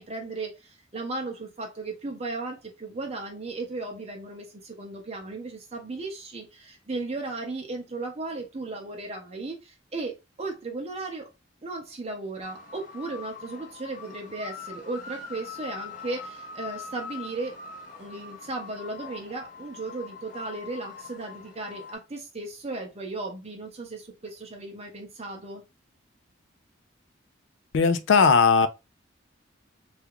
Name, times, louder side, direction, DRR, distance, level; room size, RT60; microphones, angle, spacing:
voice 1, 0.0-11.3 11.6-17.6 18.0-25.6, right 3 dB, 35° right, 0.6 m, -36 dB
sound 1, 12.4-21.9, left 5 dB, 40° left, 0.7 m, -43 dB
voice 2, 27.7-28.7, left 5 dB, 65° left, 0.4 m, -18 dB
3.4 x 2.4 x 2.8 m
head